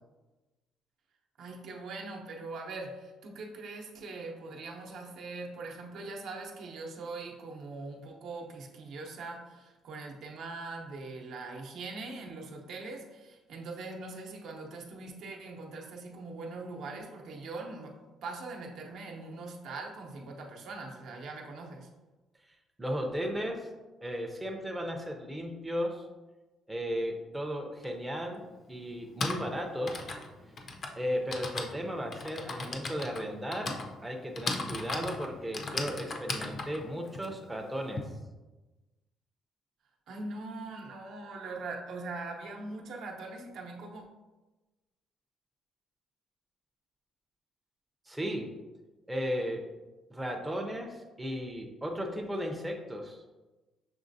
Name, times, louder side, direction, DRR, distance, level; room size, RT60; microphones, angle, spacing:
voice 1, 1.4-17.9 18.2-21.9 40.1-44.1, right 3 dB, 70° right, 1 dB, 0.7 m, -42 dB
voice 2, 22.8-23.7 24.0-26.1 26.7-30.1 31.0-33.7 34.0-38.0 48.1-48.5 49.1-49.6 50.1-53.2, equal, 5° right, 1 dB, 0.5 m, -35 dB
Typing, 27.8-27.9 28.9-38.0, left 3 dB, 40° left, 0.5 m, -37 dB
6.2 x 3.1 x 2.6 m, 1.2 s
cardioid pair, 130°, 0 cm